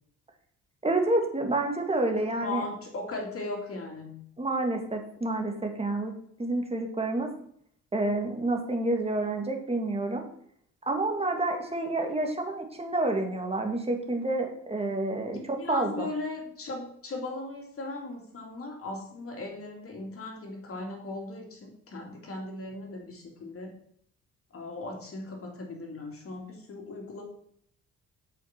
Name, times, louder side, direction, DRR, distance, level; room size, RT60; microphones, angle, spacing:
voice 1, 0.8-2.6 4.4-6.1 6.4-7.3 7.9-10.2 10.9-16.1, right 2 dB, 20° right, 3 dB, 2.1 m, -29 dB
voice 2, 2.4-4.2 15.3-23.8 24.5-27.2, left 2 dB, 50° left, 1 dB, 2.8 m, -38 dB
7.5 x 5.8 x 6.0 m, 0.65 s
cardioid pair, 90°, 30 cm